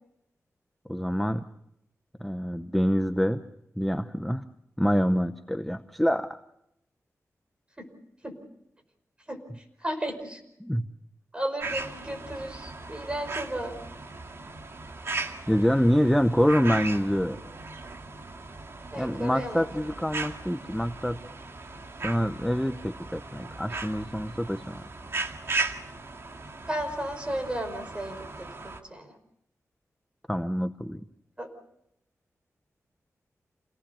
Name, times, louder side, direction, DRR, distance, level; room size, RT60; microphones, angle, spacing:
voice 1, 0.9-1.4 2.2-3.4 3.8-4.4 4.8-6.4 10.6-10.9 15.5-17.4 19.0-21.2 22.0-24.8 30.3-31.0, equal, ahead, 8 dB, 0.8 m, -26 dB
voice 2, 9.3-10.4 11.3-13.7 18.9-19.7 26.7-29.1 31.4-31.5, right 1 dB, 20° right, 4 dB, 5.3 m, -34 dB
sound 1, 11.6-28.8, right 3 dB, 50° right, 2.0 m, -37 dB
29.0 x 18.5 x 6.9 m, 0.79 s
wide cardioid pair, 130°, 6 cm